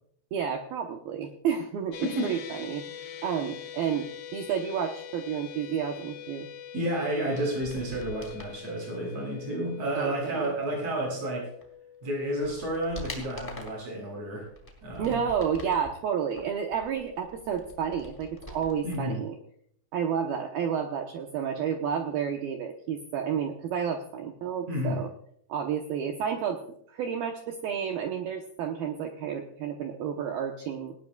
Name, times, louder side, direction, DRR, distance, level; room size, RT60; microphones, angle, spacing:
voice 1, 0.3-3.0 3.2-6.5 10.0-10.5 15.0-19.4 19.9-25.1 25.5-26.6 26.9-30.9, right 7 dB, 85° right, 3 dB, 2.1 m, -31 dB
sound 1, 1.9-14.3, left 9 dB, 65° left, 3.2 m, -45 dB
voice 2, 2.0-2.3 6.7-11.5 12.0-14.5 14.8-15.2 18.8-19.2 24.7-25.0, right 1 dB, 30° right, -2 dB, 8.9 m, -31 dB
sound 2, 7.5-8.6 11.6-11.7 12.2-13.9 14.4-15.9 16.3-19.0 19.2-19.3, equal, 10° left, 2.5 m, -44 dB
19.0 x 18.5 x 2.4 m, 0.67 s
omnidirectional pair, 5.9 m